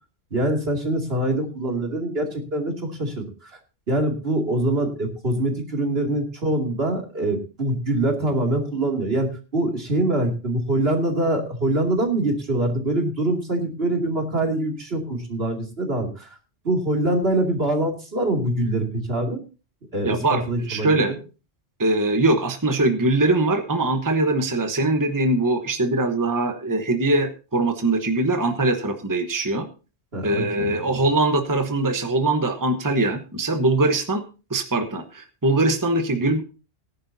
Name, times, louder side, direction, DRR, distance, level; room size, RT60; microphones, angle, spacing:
voice 1, 0.3-3.5 3.9-16.3 16.6-19.4 19.9-21.1 30.1-30.8, right 1 dB, 65° right, 2 dB, 3.0 m, -24 dB
voice 2, 20.0-21.1 21.8-29.7 30.2-34.2 34.5-36.4, right 2 dB, 20° right, 6 dB, 1.1 m, -22 dB
18.5 x 10.5 x 2.7 m, 0.33 s
omnidirectional pair, 1.1 m